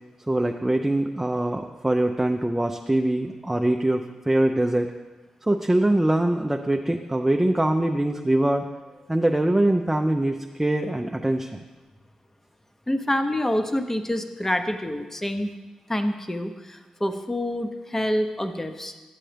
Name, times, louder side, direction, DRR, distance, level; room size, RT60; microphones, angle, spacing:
voice 1, 0.3-4.9 5.5-8.7 9.1-11.6, right 1 dB, 15° right, 3 dB, 0.5 m, -23 dB
Wind, 6.4-10.0 10.5-11.8 12.3-12.4, right 2 dB, 85° left, 1.7 m, -56 dB
voice 2, 12.9-15.5 15.9-18.9, left 1 dB, 15° left, 8 dB, 0.8 m, -27 dB
10.0 x 7.5 x 3.3 m, 1.2 s
supercardioid pair, 45°, 2 cm